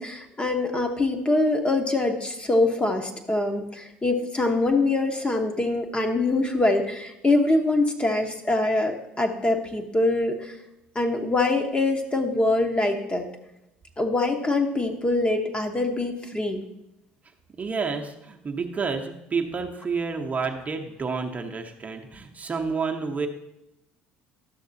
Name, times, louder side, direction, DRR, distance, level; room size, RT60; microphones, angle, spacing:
voice 1, 0.0-10.5 10.9-13.3 14.0-16.6, left 2 dB, 20° left, 4 dB, 1.1 m, -24 dB
voice 2, 17.6-23.3, right 5 dB, 30° right, 3 dB, 0.9 m, -29 dB
11.5 x 6.4 x 2.7 m, 0.86 s
hypercardioid pair, 65°, 5 cm